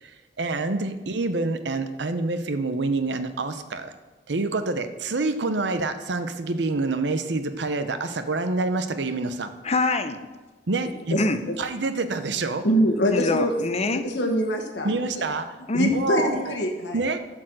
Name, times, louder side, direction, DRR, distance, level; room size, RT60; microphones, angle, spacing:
voice 1, 0.0-3.9 4.3-9.5 10.7-11.2 11.6-12.6 14.8-15.5 15.8-16.6 16.9-17.2, right 3 dB, 70° right, 9 dB, 0.7 m, -27 dB
voice 2, 9.6-10.3 11.2-11.4 13.1-14.1 15.7-16.1, left 3 dB, 35° left, 9 dB, 0.7 m, -25 dB
voice 3, 12.6-13.5 14.0-14.9 15.7-17.0, equal, 75° left, 1 dB, 1.2 m, -24 dB
11.5 x 4.6 x 7.5 m, 1.3 s
head